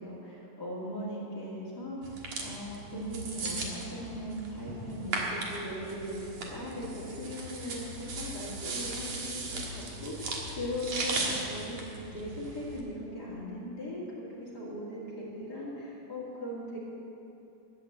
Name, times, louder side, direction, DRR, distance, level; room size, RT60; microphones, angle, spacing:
voice 1, 0.0-2.0 2.4-16.8, equal, 35° left, -6 dB, 2.6 m, -39 dB
sound 1, 2.0-12.8, right 2 dB, 55° right, 2.5 m, -37 dB
12.5 x 9.2 x 8.0 m, 2.9 s
omnidirectional pair, 3.8 m